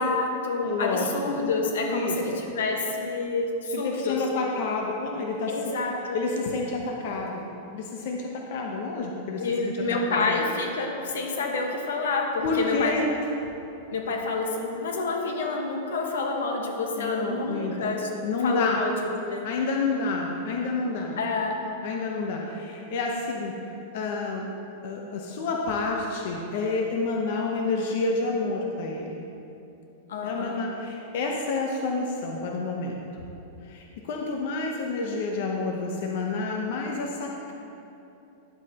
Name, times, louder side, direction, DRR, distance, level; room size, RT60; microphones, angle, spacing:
voice 1, 0.0-4.2 5.5-6.2 9.4-13.0 13.9-18.1 18.4-19.5 21.2-21.6 30.1-30.6, left 3 dB, 90° left, 2 dB, 1.3 m, -28 dB
voice 2, 0.6-1.4 1.9-2.4 3.7-5.5 6.1-7.5 7.7-9.7 10.1-10.4 12.4-13.0 17.0-17.9 18.2-18.8 19.4-21.2 21.8-23.5 23.9-24.5 24.8-29.2 30.2-33.0 33.7-37.5, left 3 dB, 55° left, 0 dB, 0.8 m, -29 dB
10.5 x 8.2 x 2.9 m, 2.9 s
supercardioid pair, 160°, 0 cm